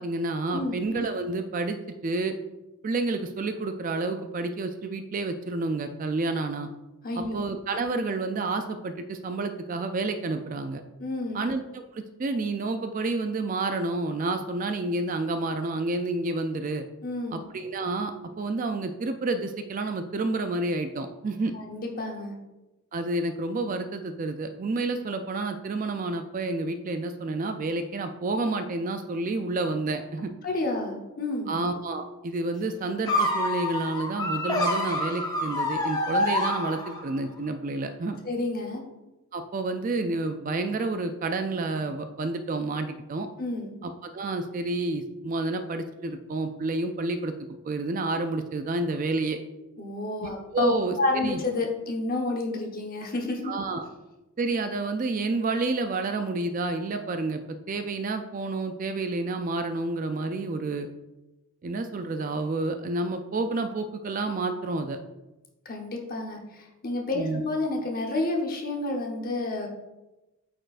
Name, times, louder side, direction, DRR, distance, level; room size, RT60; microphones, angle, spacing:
voice 1, 0.0-2.4 2.8-6.7 7.2-10.8 11.3-16.8 17.3-21.5 22.9-30.3 31.5-38.2 39.3-43.3 43.8-47.3 47.6-49.4 50.2-51.0 51.2-51.4 53.4-53.9 54.4-60.9 61.6-65.0 67.1-67.4, right 2 dB, 35° right, 8 dB, 0.3 m, -29 dB
voice 2, 0.5-0.8 7.0-7.5 11.0-11.5 17.0-17.4 21.5-22.4 30.4-31.6 38.2-38.8 43.4-43.7 49.8-53.5 65.6-69.7, left 2 dB, 40° left, 1 dB, 0.9 m, -30 dB
sound 1, 33.1-37.2, left 1 dB, 15° left, 0.6 m, -27 dB
8.8 x 4.4 x 2.5 m, 1.0 s
head